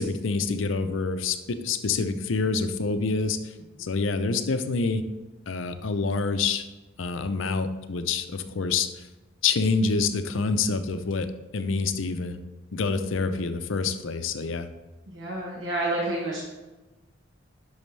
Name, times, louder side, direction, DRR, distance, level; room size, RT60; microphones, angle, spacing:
voice 1, 0.0-3.4 3.8-5.1 5.5-6.7 7.0-9.1 9.4-11.3 11.5-12.4 12.7-14.7, left 4 dB, 75° left, 9 dB, 0.6 m, -27 dB
voice 2, 15.1-16.4, right 2 dB, 70° right, -3 dB, 1.2 m, -29 dB
10.5 x 6.3 x 3.3 m, 1.1 s
head